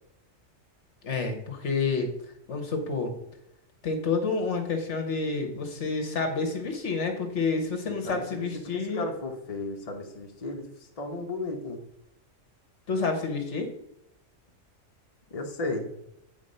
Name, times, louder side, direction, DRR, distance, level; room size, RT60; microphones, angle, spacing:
voice 1, 1.0-2.1 2.5-3.1 3.8-9.0 12.9-13.7, left 4 dB, 65° left, 5 dB, 1.4 m, -29 dB
voice 2, 8.0-8.5 8.7-11.8 15.3-15.9, left 2 dB, 30° left, 1 dB, 1.0 m, -34 dB
9.2 x 3.8 x 5.4 m, 0.80 s
omnidirectional pair, 1.4 m